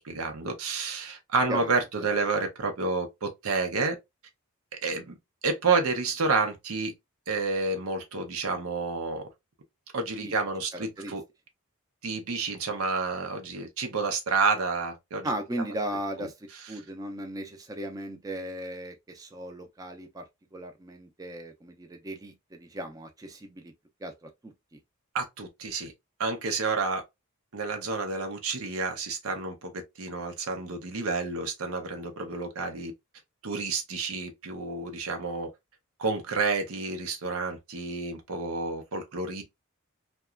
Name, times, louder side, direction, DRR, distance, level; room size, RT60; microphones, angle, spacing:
voice 1, 0.0-4.0 4.8-5.1 5.4-6.9 7.3-9.2 9.9-11.2 12.0-15.3 16.2-16.3 16.5-16.6 25.1-25.9 26.2-27.0 27.5-32.9 33.4-35.5 36.0-39.4, right 4 dB, 85° right, 0.7 m, -29 dB
voice 2, 10.7-11.1 15.2-16.3 16.7-20.2 20.5-23.7 24.0-24.5, right 1 dB, 15° right, 0.4 m, -36 dB
2.8 x 2.2 x 2.3 m
head